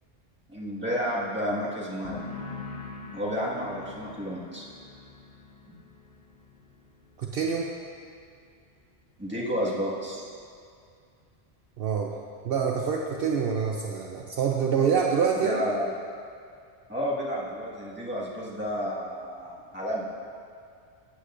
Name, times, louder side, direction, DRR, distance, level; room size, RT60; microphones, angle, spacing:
voice 1, 0.5-2.2 3.1-4.7 5.7-5.8 9.2-10.3 15.4-15.9 16.9-20.1, equal, 10° right, -7 dB, 1.6 m, -31 dB
sound 1, 2.0-9.5 9.8-10.3, left 4 dB, 45° left, 1.2 m, -45 dB
voice 2, 7.2-7.7 11.8-12.1 12.4-15.6, right 6 dB, 65° right, 0 dB, 0.8 m, -26 dB
14.0 x 8.2 x 2.5 m, 2.3 s
omnidirectional pair, 1.1 m